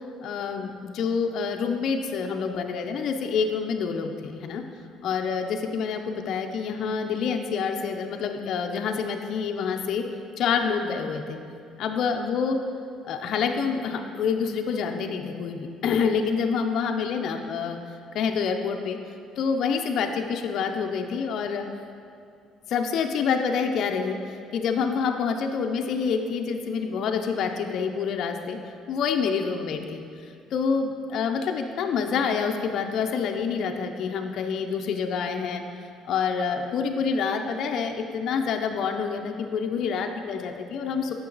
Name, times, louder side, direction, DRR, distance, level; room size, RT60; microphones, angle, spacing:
voice 1, 0.2-4.6 5.0-10.0 10.4-11.4 11.8-12.6 13.0-17.8 18.1-19.0 19.4-21.8 22.7-28.6 28.9-30.0 30.5-35.6 36.0-41.1, left 6 dB, 50° left, 4 dB, 0.5 m, -27 dB
8.6 x 5.9 x 3.9 m, 2.4 s
cardioid pair, 170°, 0 cm